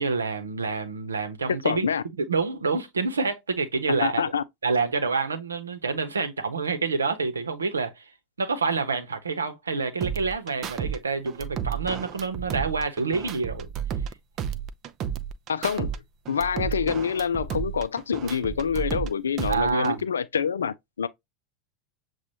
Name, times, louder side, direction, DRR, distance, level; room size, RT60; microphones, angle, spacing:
voice 1, 0.0-1.9 2.2-4.2 4.6-8.0 8.4-13.7 19.4-20.0, right 4 dB, 80° right, 0.9 m, -27 dB
voice 2, 1.5-2.0 4.0-4.4 15.5-16.0 16.3-21.1, left 6 dB, 75° left, 0.4 m, -26 dB
sound 1, 10.0-11.0 11.3-14.1 14.4-16.0 16.3-19.1 19.4-20.0, right 8 dB, 40° right, 0.5 m, -32 dB
7.2 x 2.4 x 2.8 m
figure-of-eight pair, 85°, 0 cm